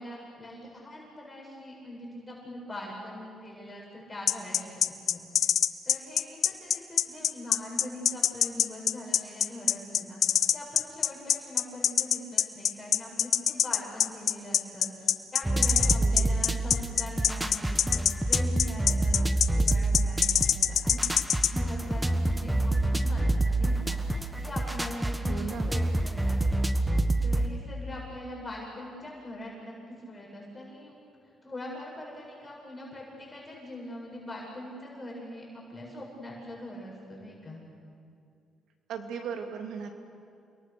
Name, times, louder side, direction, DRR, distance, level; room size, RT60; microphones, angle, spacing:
voice 1, 0.0-5.5 5.8-26.4 27.2-30.9 31.4-37.6, left 1 dB, 20° left, -3 dB, 8.0 m, -42 dB
sound 1, 4.3-21.5, left 9 dB, 65° left, 0.8 m, -24 dB
sound 2, 15.4-27.5, right 2 dB, 10° right, 1.4 m, -27 dB
voice 2, 16.0-16.4 25.2-25.7 38.9-39.9, right 6 dB, 80° right, 4 dB, 2.8 m, -37 dB
29.0 x 22.5 x 7.0 m, 2.4 s
cardioid pair, 90°, 0 cm